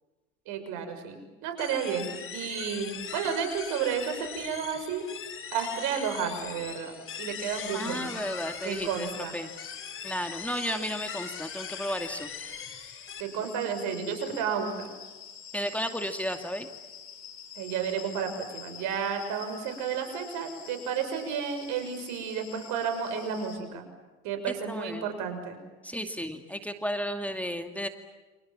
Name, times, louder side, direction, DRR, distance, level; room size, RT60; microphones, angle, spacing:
voice 1, 0.5-1.2 1.4-5.1 5.5-8.2 8.6-9.4 13.2-14.9 17.6-23.8 24.2-25.6, right 7 dB, 70° right, 7 dB, 6.5 m, -32 dB
sound 1, 1.6-13.2, left 7 dB, 40° left, 3.9 m, -40 dB
sound 2, 7.3-23.6, left 8 dB, 55° left, 4.9 m, -47 dB
voice 2, 7.7-9.5 10.0-12.3 15.5-16.7 24.5-25.1 25.8-27.9, equal, 5° left, 6 dB, 2.3 m, -33 dB
29.5 x 26.5 x 7.5 m, 1.2 s
hypercardioid pair, 80°, 32 cm